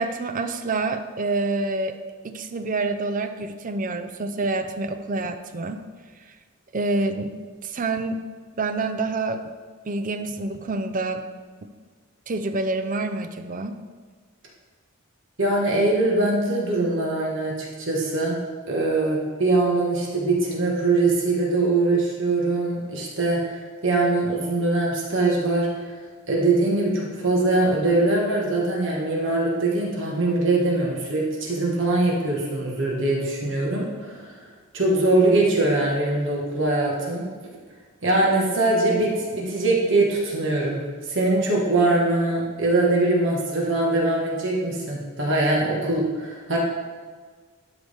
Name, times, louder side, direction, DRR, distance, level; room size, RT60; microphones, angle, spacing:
voice 1, 0.0-2.0 2.2-5.8 6.7-8.2 8.6-9.5 9.8-11.2 11.6-11.7 12.3-13.8, right 3 dB, 40° right, 8 dB, 0.5 m, -27 dB
voice 2, 15.4-18.4 18.7-25.7 26.3-34.3 34.7-37.2 38.0-46.6, right 2 dB, 60° right, -3 dB, 1.5 m, -22 dB
12.0 x 4.8 x 3.5 m, 1.5 s
head